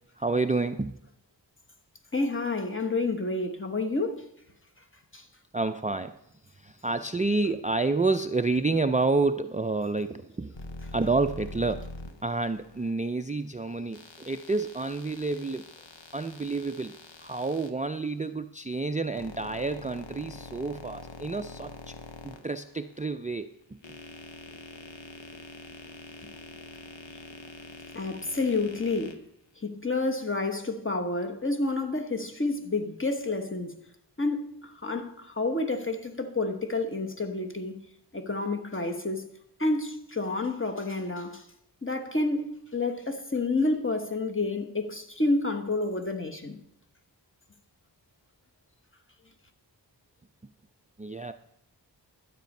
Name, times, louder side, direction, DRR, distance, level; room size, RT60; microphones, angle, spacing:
voice 1, 0.2-1.0 5.5-6.2 6.5-10.5 10.9-11.8 12.2-15.7 16.1-21.9 22.2-23.5 51.0-51.3, right 3 dB, 20° right, 0.4 m, -29 dB
voice 2, 2.1-4.3 5.1-5.2 27.9-29.2 29.6-33.7 34.2-37.8 38.1-39.3 39.6-41.4 41.8-46.6, left 2 dB, 30° left, 1.1 m, -29 dB
sound 1, 10.5-12.9 13.9-17.7 18.7-23.1 23.6-29.2, left 3 dB, 85° left, 1.0 m, -45 dB
11.5 x 8.2 x 5.4 m
wide cardioid pair, 55°, 43 cm